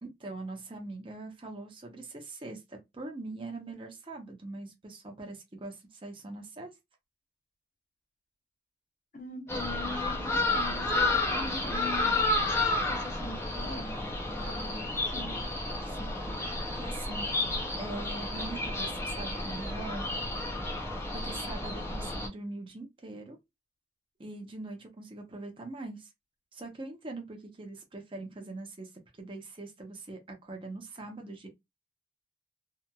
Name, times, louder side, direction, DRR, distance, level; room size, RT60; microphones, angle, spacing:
voice 1, 0.0-6.7 15.8-16.4 16.7-17.3 17.7-20.1 21.1-23.4 24.2-26.1 26.5-28.9 29.2-31.5, right 2 dB, 25° right, 0.7 m, -42 dB
voice 2, 9.1-12.2 12.9-15.4, left 3 dB, 40° left, 0.9 m, -42 dB
sound 1, 9.5-22.3, left 2 dB, 15° left, 0.6 m, -31 dB
2.8 x 2.4 x 2.2 m
head